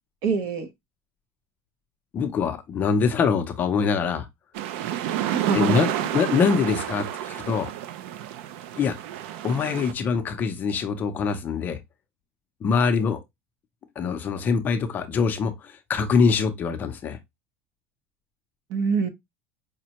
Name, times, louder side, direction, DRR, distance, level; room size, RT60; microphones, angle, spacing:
voice 1, 0.2-0.7 5.2-5.8 18.7-19.1, right 5 dB, 55° right, 0.8 m, -25 dB
voice 2, 2.1-4.3 5.5-7.7 8.8-9.0 9.4-11.8 12.6-13.2 14.0-17.2, left 5 dB, 30° left, 0.5 m, -24 dB
sound 1, 4.5-9.9, right 11 dB, 75° right, 0.5 m, -30 dB
5.0 x 2.2 x 2.8 m
cardioid pair, 150°, 6 cm